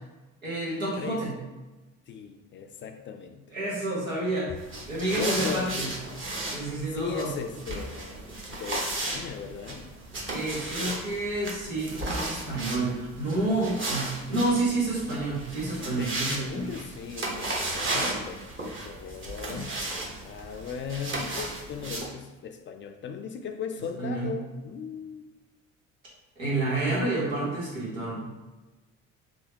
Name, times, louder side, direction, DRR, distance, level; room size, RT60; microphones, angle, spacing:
voice 1, 0.4-1.3 3.5-4.6 4.9-5.9 6.5-7.3 10.3-16.7 24.0-24.3 26.4-28.2, right 2 dB, 85° right, -5 dB, 1.4 m, -29 dB
voice 2, 1.0-1.3 2.1-3.4 5.1-5.7 6.6-8.1 8.5-10.0 14.5-14.7 16.0-19.7 20.2-25.3, left 6 dB, 30° left, 5 dB, 0.4 m, -37 dB
sound 1, 4.6-22.1, right 2 dB, 30° right, 1.1 m, -35 dB
4.8 x 2.7 x 2.8 m, 1.2 s
figure-of-eight pair, 55°, 39 cm